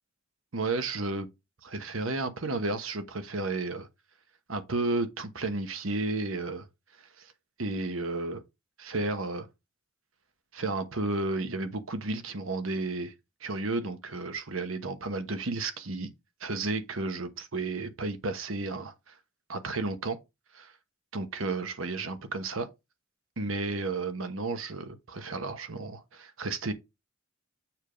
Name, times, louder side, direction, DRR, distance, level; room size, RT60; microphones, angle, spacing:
voice 1, 0.5-1.3 1.6-3.9 4.5-6.7 7.2-7.3 7.6-8.4 8.8-9.5 10.5-13.1 13.4-16.1 16.4-19.2 19.5-20.2 20.5-20.7 21.1-22.7 23.4-26.7, right 3 dB, 80° right, 1.1 m, -32 dB
7.3 x 3.5 x 5.1 m
head